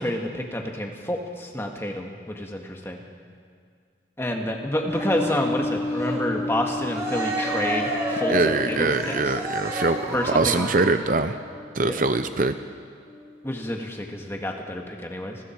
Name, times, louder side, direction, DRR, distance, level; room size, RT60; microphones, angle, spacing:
voice 1, 0.0-3.0 4.2-8.3 8.7-9.3 10.1-10.7 11.8-12.0 13.4-15.4, left 1 dB, 15° left, 1 dB, 1.8 m, -29 dB
sound 1, 4.8-13.8, left 2 dB, 80° left, 6.2 m, -34 dB
Cheering, 4.9-11.3, right 1 dB, 15° right, 3.4 m, -31 dB
voice 2, 8.3-11.3 11.7-12.5, right 3 dB, 45° right, 9 dB, 0.7 m, -23 dB
29.5 x 20.5 x 4.6 m, 2.1 s
head